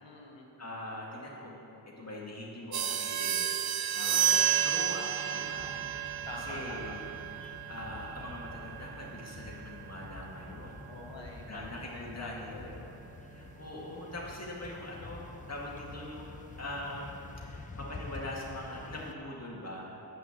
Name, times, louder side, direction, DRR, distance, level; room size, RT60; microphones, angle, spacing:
voice 1, 0.0-0.5 6.2-7.0 10.9-12.9, left 2 dB, 80° left, 0 dB, 1.5 m, -45 dB
voice 2, 0.6-5.7 6.4-7.0 7.7-10.8 11.5-12.7 13.3-20.0, left 1 dB, 35° left, -4 dB, 2.1 m, -42 dB
sound 1, 2.7-12.9, right 10 dB, 55° right, 0.6 m, -33 dB
sound 2, 5.6-19.1, left 3 dB, 20° left, 0.4 m, -48 dB
9.2 x 6.3 x 7.5 m, 2.8 s
wide cardioid pair, 90°, 44 cm